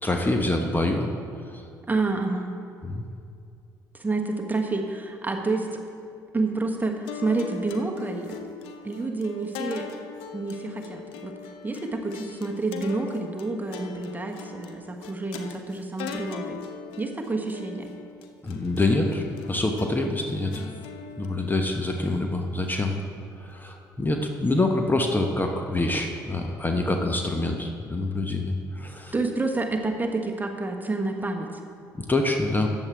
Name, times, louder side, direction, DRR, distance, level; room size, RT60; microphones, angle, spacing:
voice 1, 0.0-1.1 1.5-1.6 2.8-3.1 18.4-20.7 21.2-22.9 23.4-29.1 32.0-32.7, left 2 dB, 20° left, 3 dB, 1.0 m, -26 dB
voice 2, 1.9-2.5 3.9-5.8 6.3-8.4 8.8-9.9 10.3-11.3 11.6-16.6 17.0-17.9 29.1-31.5, right 3 dB, 15° right, 3 dB, 1.3 m, -28 dB
sound 1, 7.1-23.5, left 6 dB, 65° left, 0.7 m, -41 dB
14.0 x 9.2 x 3.5 m, 2.4 s
figure-of-eight pair, 50°, 10 cm